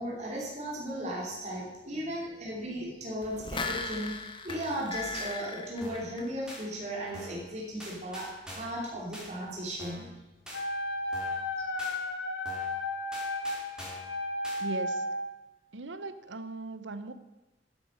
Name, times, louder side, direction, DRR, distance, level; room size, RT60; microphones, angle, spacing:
voice 1, 0.0-8.3 8.5-10.0, equal, 40° right, -4 dB, 3.2 m, -36 dB
sound 1, 3.2-6.7 7.1-7.2, left 3 dB, 25° left, 1.2 m, -38 dB
sound 2, 4.5-4.8 5.1-5.3 5.8-6.1 6.5-6.6 7.1-7.5 7.8-8.8 9.1-9.3 9.8-10.1 10.5-10.6 11.1-11.4 11.8-11.9 12.4-12.8 13.1-14.1 14.4-14.6, equal, 5° right, 3.2 m, -45 dB
Wind instrument woodwind instrument, 10.5-15.3, left 1 dB, 70° left, 1.8 m, -33 dB
voice 2, 14.6-15.2 15.7-17.1, right 2 dB, 90° right, 11 dB, 0.9 m, -39 dB
13.0 x 8.6 x 6.5 m, 1.0 s
head